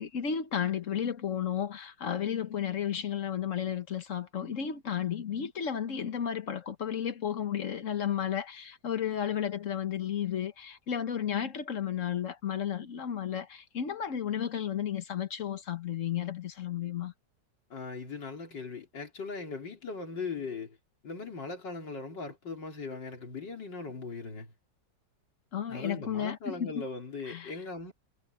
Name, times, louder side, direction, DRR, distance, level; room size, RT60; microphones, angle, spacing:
voice 1, 0.0-17.1 25.5-26.7 27.3-27.5, left 9 dB, 50° left, 1.3 m, -33 dB
voice 2, 17.7-20.8 21.0-24.5 25.7-27.9, left 4 dB, 80° left, 4.2 m, -39 dB
omnidirectional pair, 1.9 m